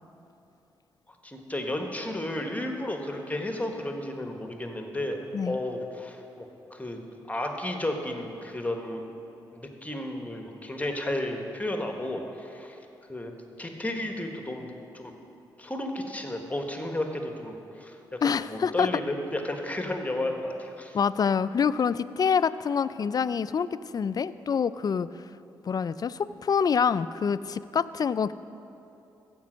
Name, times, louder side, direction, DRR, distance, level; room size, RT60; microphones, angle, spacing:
voice 1, 1.2-5.2 5.4-7.0 7.3-9.0 9.5-12.8 13.1-13.3 13.6-15.1 15.6-21.0, left 1 dB, 15° left, 3 dB, 1.4 m, -33 dB
voice 2, 18.2-18.9 20.9-25.1 25.6-28.3, left 6 dB, 45° left, 16 dB, 0.3 m, -26 dB
15.0 x 5.3 x 6.3 m, 2.8 s
supercardioid pair, 45°, 9 cm